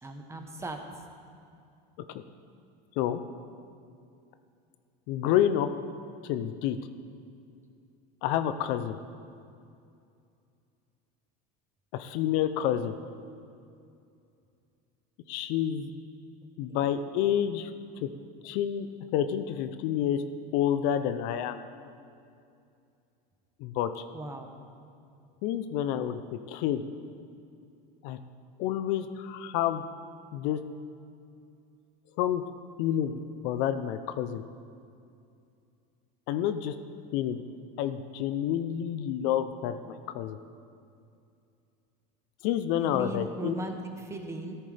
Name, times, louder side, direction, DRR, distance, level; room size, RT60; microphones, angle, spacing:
voice 1, 0.0-0.8 16.7-16.9 24.1-24.5 42.7-44.6, right 2 dB, 15° right, 4 dB, 1.0 m, -38 dB
voice 2, 5.1-5.7 6.2-6.8 8.2-9.0 11.9-13.0 15.3-15.9 16.6-17.7 18.0-18.1 18.4-18.9 19.1-20.2 20.5-21.6 23.6-24.0 25.4-26.2 26.5-26.8 28.0-28.2 28.6-29.8 30.3-30.6 32.2-32.4 32.8-34.4 36.3-36.7 37.1-37.4 37.8-40.4 42.4-43.5, left 10 dB, 65° left, 10 dB, 0.7 m, -28 dB
13.5 x 13.5 x 3.4 m, 2.5 s
supercardioid pair, 140°, 21 cm